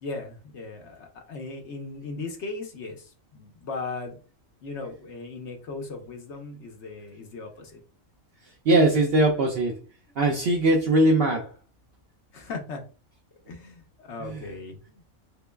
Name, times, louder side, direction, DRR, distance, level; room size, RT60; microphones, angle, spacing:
voice 1, 0.0-4.2 4.6-7.8 12.3-12.8 13.5-15.0, left 3 dB, 60° left, 1.0 m, -37 dB
voice 2, 8.7-9.8 10.2-11.5 14.2-14.4, right 1 dB, 65° right, 0.6 m, -21 dB
3.7 x 3.1 x 2.2 m
omnidirectional pair, 1.4 m